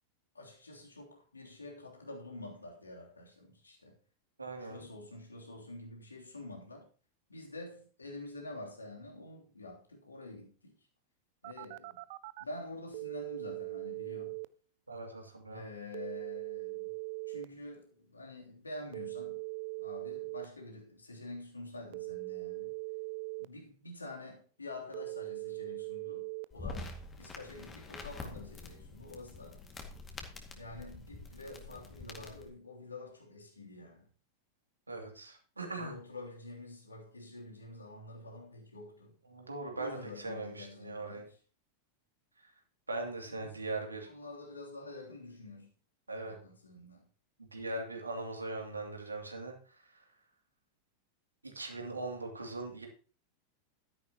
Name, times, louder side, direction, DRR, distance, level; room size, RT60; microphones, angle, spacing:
voice 1, 0.3-4.0 4.6-6.9 7.3-10.8 11.4-12.0 12.4-14.4 15.5-16.9 17.3-19.4 19.8-22.7 23.4-29.6 30.6-34.1 35.7-39.1 39.7-41.3 43.2-43.6 44.1-45.7 46.2-47.1, left 2 dB, 80° left, 3.2 m, -47 dB
voice 2, 4.4-4.8 14.9-15.6 34.9-35.9 39.3-41.3 42.4-42.5 42.9-44.1 46.1-46.4 47.4-50.0 51.4-52.9, right 2 dB, 80° right, 2.7 m, -40 dB
Telephone, 11.4-12.4 12.9-14.4 15.9-17.4 18.9-20.4 21.9-23.4 24.9-26.4, right 28 dB, 50° right, 0.5 m, -40 dB
sound 1, 26.5-32.5, left 3 dB, 20° left, 2.2 m, -46 dB
13.0 x 10.5 x 3.0 m
figure-of-eight pair, 90°, 0 cm